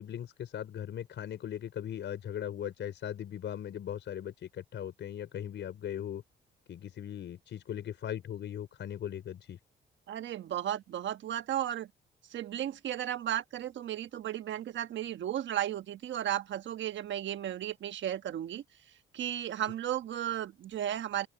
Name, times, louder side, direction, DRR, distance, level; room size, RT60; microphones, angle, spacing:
voice 1, 0.0-6.2 6.7-9.6, left 10 dB, 65° left, 5.1 m, -39 dB
voice 2, 10.1-11.9 12.3-18.6 19.1-21.3, right 11 dB, 70° right, 1.3 m, -34 dB
open air
cardioid pair, 90°, 20 cm